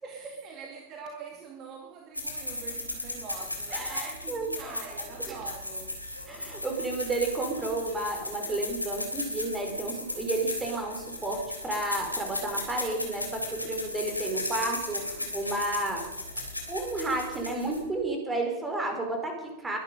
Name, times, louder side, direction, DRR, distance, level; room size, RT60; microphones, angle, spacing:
voice 1, 0.0-6.0, right 6 dB, 35° right, 2 dB, 2.2 m, -44 dB
sound 1, 2.1-18.0, left 1 dB, 85° left, 3.3 m, -36 dB
voice 2, 3.7-5.4 6.3-16.0 16.7-19.8, right 2 dB, 15° right, 3 dB, 5.1 m, -32 dB
22.5 x 11.0 x 5.4 m, 0.96 s
figure-of-eight pair, 90°, 0 cm